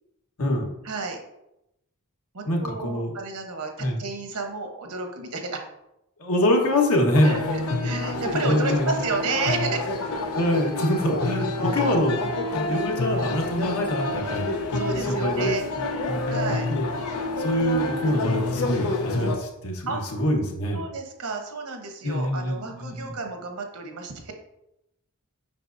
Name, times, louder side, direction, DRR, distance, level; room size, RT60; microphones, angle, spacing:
voice 1, 0.8-1.2 2.3-5.6 7.2-9.8 11.7-12.0 14.7-15.6 16.3-16.7 19.9-20.0 20.7-24.3, right 4 dB, 70° right, 4 dB, 1.0 m, -31 dB
voice 2, 2.5-3.1 3.8-4.0 6.2-7.5 8.3-9.0 10.3-12.1 12.5-14.5 15.0-15.5 16.1-16.3 16.7-16.8 17.4-20.8 22.0-23.1, left 1 dB, 70° left, 1 dB, 1.3 m, -24 dB
sound 1, 7.1-19.4, left 2 dB, 85° left, 0.8 m, -28 dB
7.4 x 5.7 x 2.6 m, 0.86 s
head